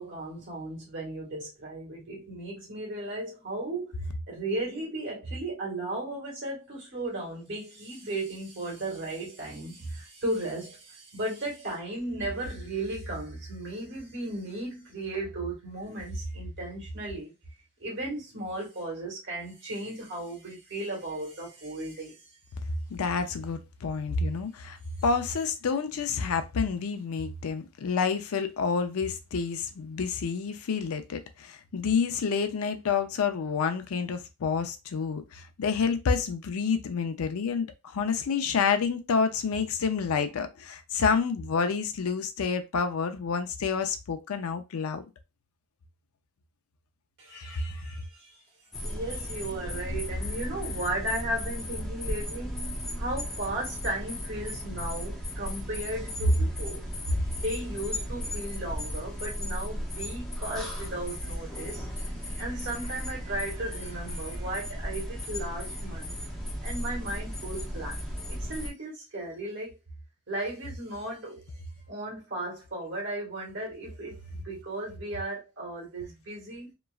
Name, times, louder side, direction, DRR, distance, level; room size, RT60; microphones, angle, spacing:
voice 1, 0.0-3.9 4.3-17.3 17.8-22.2 47.2-48.4 48.8-52.7 53.0-56.8 57.1-66.2 66.6-68.0 68.3-69.8 70.3-71.4 71.9-76.7, right 1 dB, 60° right, 1.5 m, -35 dB
voice 2, 22.9-45.0 47.3-48.0, left 5 dB, 70° left, 0.5 m, -29 dB
sound 1, 48.7-68.7, equal, ahead, 0.6 m, -36 dB
3.0 x 2.4 x 2.3 m
head